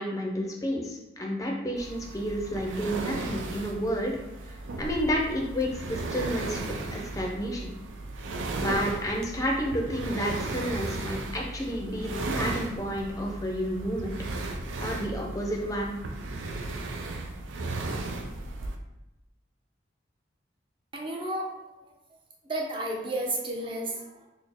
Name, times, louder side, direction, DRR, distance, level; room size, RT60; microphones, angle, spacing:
voice 1, 0.0-4.2 4.5-6.6 6.9-7.7 8.6-14.1 14.8-16.0, equal, 20° left, 0 dB, 0.5 m, -30 dB
sound 1, 1.8-18.8, right 2 dB, 90° right, 0.4 m, -35 dB
voice 2, 20.9-21.9 22.5-24.3, right 1 dB, 25° right, -1 dB, 0.5 m, -32 dB
4.1 x 2.1 x 3.4 m, 1.0 s
head